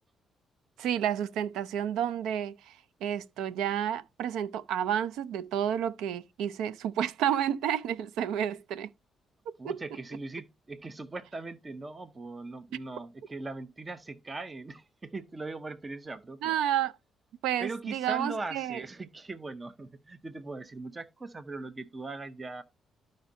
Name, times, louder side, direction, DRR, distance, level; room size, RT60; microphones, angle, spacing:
voice 1, 0.8-8.9 9.6-9.8 12.7-12.8 16.4-16.9 17.4-18.8, right 10 dB, 90° right, 0.4 m, -30 dB
voice 2, 9.6-16.6 17.6-22.6, right 3 dB, 25° right, 0.6 m, -40 dB
13.0 x 5.2 x 2.7 m
cardioid pair, 90°, 0 cm